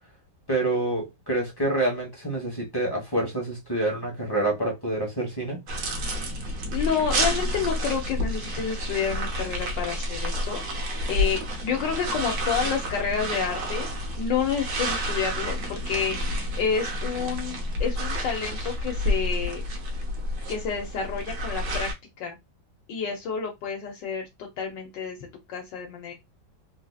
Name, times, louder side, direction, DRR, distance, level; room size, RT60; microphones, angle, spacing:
voice 1, 0.5-5.6, right 2 dB, 15° left, 1.0 m, -27 dB
sound 1, 5.7-21.9, equal, 60° right, 1.3 m, -30 dB
voice 2, 6.7-10.6 11.1-13.9 14.2-16.2 16.6-19.6 20.5-21.9 22.2-22.4 22.9-24.3 24.6-25.2 25.5-26.1, left 6 dB, 80° left, 1.5 m, -29 dB
3.8 x 2.7 x 2.4 m
omnidirectional pair, 1.9 m